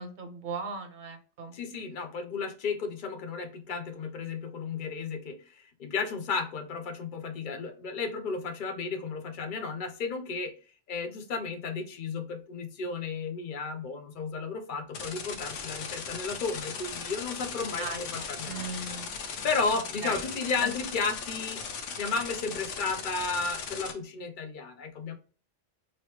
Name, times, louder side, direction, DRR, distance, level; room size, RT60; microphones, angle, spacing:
voice 1, 0.0-1.6 17.8-19.1 19.7-20.2 20.6-20.7, right 4 dB, 50° right, 6 dB, 0.7 m, -38 dB
voice 2, 1.5-10.5 10.9-18.7 19.4-21.6 22.0-25.2, left 4 dB, 55° left, 7 dB, 0.6 m, -33 dB
sound 1, 14.9-23.9, left 5 dB, 90° left, 1.0 m, -38 dB
3.0 x 2.9 x 3.0 m, 0.39 s
omnidirectional pair, 1.2 m